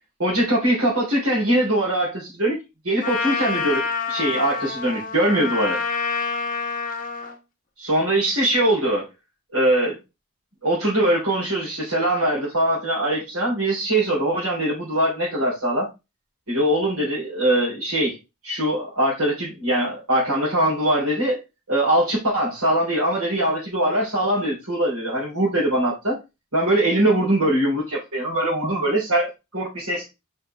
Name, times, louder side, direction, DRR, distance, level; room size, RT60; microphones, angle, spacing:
voice 1, 0.2-2.6 2.8-5.8 7.8-9.1 9.5-10.0 10.6-15.9 16.5-18.2 18.4-21.4 21.7-26.2 26.5-30.1, right 1 dB, 90° right, -8 dB, 3.6 m, -22 dB
Trumpet, 3.0-7.3, left 5 dB, 40° left, 0.9 m, -27 dB
5.3 x 5.3 x 3.3 m, 0.25 s
head